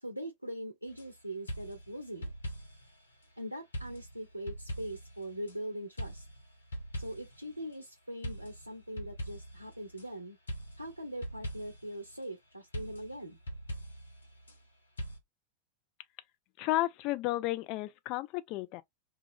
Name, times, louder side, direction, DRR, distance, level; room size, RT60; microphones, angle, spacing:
voice 1, 0.0-2.3 3.4-6.3 7.0-10.4 10.8-13.4, right 1 dB, 85° right, 0.5 m, -41 dB
sound 1, 0.9-1.1 1.5-2.9 3.7-5.5 6.0-7.5 8.2-10.0 10.5-12.0 12.7-14.6 15.0-15.2, equal, 75° left, 0.8 m, -42 dB
voice 2, 16.6-18.8, left 18 dB, 40° left, 0.4 m, -32 dB
2.3 x 2.3 x 3.3 m
figure-of-eight pair, 90°, 0 cm